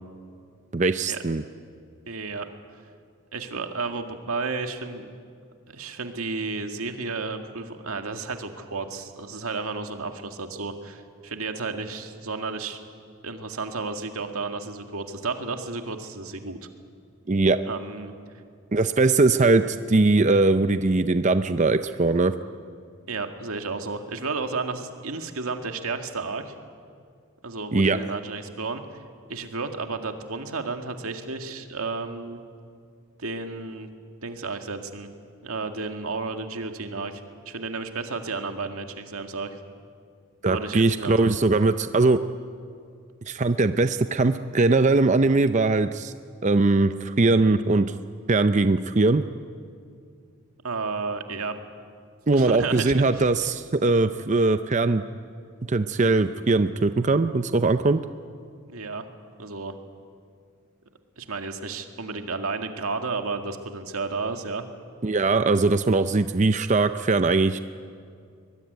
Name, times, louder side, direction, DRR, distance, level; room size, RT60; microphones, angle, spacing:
voice 1, 0.7-1.4 17.3-17.6 18.7-22.3 27.7-28.0 40.4-42.2 43.3-46.1 46.4-47.9 48.3-49.2 52.3-55.0 55.7-58.0 65.0-67.6, right 3 dB, 35° right, 10 dB, 0.6 m, -21 dB
voice 2, 2.1-2.5 3.3-5.1 5.7-12.8 13.2-16.6 17.6-18.1 23.1-26.5 27.4-28.8 29.3-32.4 33.2-33.9 34.2-35.1 35.4-39.6 40.5-41.3 50.6-51.6 52.3-52.9 58.7-59.1 59.4-59.7 61.2-64.6, right 4 dB, 90° right, 5 dB, 2.0 m, -32 dB
23.5 x 21.0 x 9.4 m, 2.2 s
head